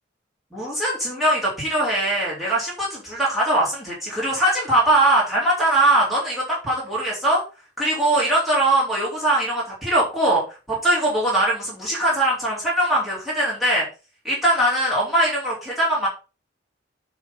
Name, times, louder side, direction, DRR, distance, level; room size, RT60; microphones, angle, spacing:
voice 1, 0.5-7.4 7.8-10.4 10.7-13.9 14.2-16.1, right 1 dB, ahead, -6 dB, 3.4 m, -21 dB
10.0 x 4.1 x 5.5 m, 0.32 s
head